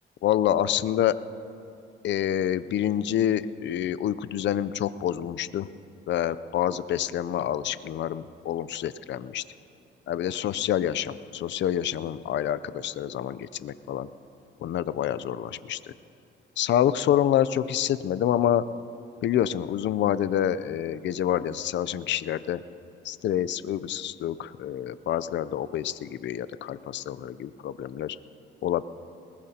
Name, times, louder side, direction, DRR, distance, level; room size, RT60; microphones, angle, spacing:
voice 1, 0.2-1.1 2.0-5.7 6.1-9.4 10.1-14.1 14.6-15.9 16.6-18.6 19.2-22.6 23.0-28.2 28.6-28.8, left 11 dB, 65° left, 15 dB, 0.5 m, -27 dB
21.5 x 20.5 x 2.9 m, 2.5 s
cardioid pair, 90°, 20 cm